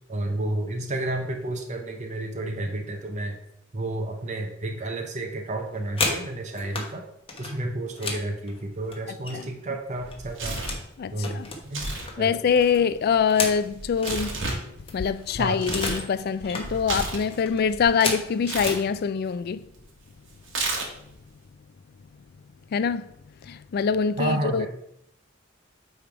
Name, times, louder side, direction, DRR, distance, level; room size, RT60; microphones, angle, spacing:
voice 1, 0.1-3.4 3.7-7.0 7.4-10.6 11.1-11.4 11.7-11.9 12.2-12.4 15.4-15.6 24.2-24.7, right 2 dB, 35° right, 0.8 m, -31 dB
sound 1, 5.6-6.9 7.3-9.6 9.9-10.9 11.2-14.2 14.6-14.7 14.9-16.1 16.4-16.7 17.2-18.8 19.7-19.8 20.2-20.5 20.8-21.3, left 3 dB, 30° left, 1.1 m, -33 dB
Tearing, 10.0-10.9 11.6-12.1 12.4-16.1 16.4-17.9 18.4-18.8 20.5-21.1, right 2 dB, 65° right, 1.4 m, -32 dB
voice 2, 11.0-11.5 12.2-14.4 14.9-19.6 22.7-23.1 23.4-24.7, left 6 dB, 50° left, 0.3 m, -24 dB
8.7 x 3.3 x 4.6 m
head